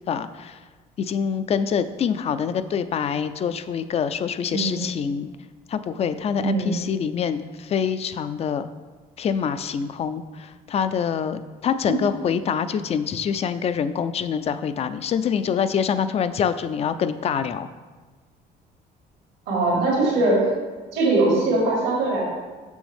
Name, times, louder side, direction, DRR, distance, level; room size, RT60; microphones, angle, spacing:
voice 1, 0.1-0.6 1.0-5.3 5.7-8.7 9.2-17.7, left 7 dB, 40° left, 12 dB, 0.4 m, -25 dB
voice 2, 6.4-6.8 19.5-20.5 20.9-22.2, right 2 dB, 85° right, -6 dB, 2.0 m, -21 dB
6.2 x 6.2 x 3.5 m, 1.3 s
cardioid pair, 110°, 17 cm